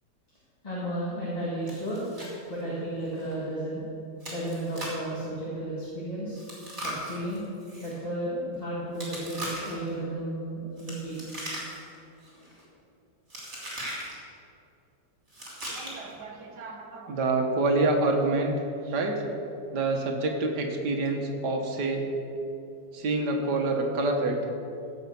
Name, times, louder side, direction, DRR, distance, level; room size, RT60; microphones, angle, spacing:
voice 1, 0.6-2.0 2.5-3.8 4.3-6.4 6.8-7.4 7.8-11.2, right 1 dB, 20° left, -7 dB, 2.0 m, -33 dB
Chewing mastication, 1.7-2.3 2.6-2.7 3.2-3.3 4.2-5.1 6.4-7.9 8.9-9.9 10.8-11.9 12.2-12.6 13.3-14.1 15.3-16.1, right 1 dB, 35° right, 3.5 m, -38 dB
voice 2, 15.7-18.5 18.9-19.2 19.7-22.1 22.9-24.4, right 2 dB, 65° right, 2 dB, 1.9 m, -27 dB
15.5 x 5.7 x 6.9 m, 2.7 s
omnidirectional pair, 1.9 m